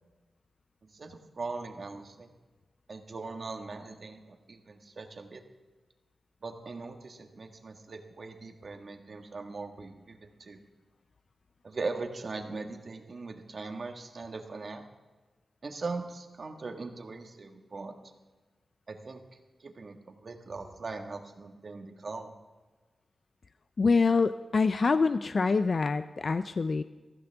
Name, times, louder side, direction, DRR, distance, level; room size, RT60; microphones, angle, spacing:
voice 1, 0.9-2.3 2.9-5.4 6.4-10.6 11.6-14.8 15.6-18.1 18.9-19.2 19.6-22.3, right 3 dB, 50° right, 4 dB, 1.6 m, -40 dB
voice 2, 23.8-26.8, left 4 dB, 45° left, 12 dB, 0.4 m, -25 dB
22.0 x 15.0 x 3.5 m, 1.3 s
wide cardioid pair, 135°, 0 cm